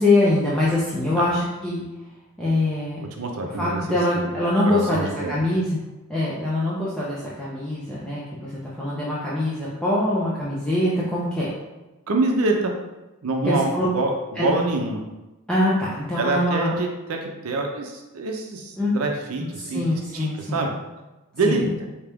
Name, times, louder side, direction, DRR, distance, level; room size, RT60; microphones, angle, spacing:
voice 1, 0.0-1.8 2.4-3.0 3.4-5.8 6.1-11.5 13.4-13.9 14.4-14.5 15.5-16.7 18.8-19.0 19.4-20.7 21.4-21.7, left 1 dB, 5° left, -9 dB, 0.6 m, -23 dB
voice 2, 3.2-3.8 4.1-4.3 4.7-5.4 12.1-12.7 13.2-15.0 16.2-19.8 20.1-20.7 21.3-21.6, right 3 dB, 75° right, 2 dB, 0.6 m, -25 dB
4.8 x 2.8 x 3.4 m, 1.1 s
head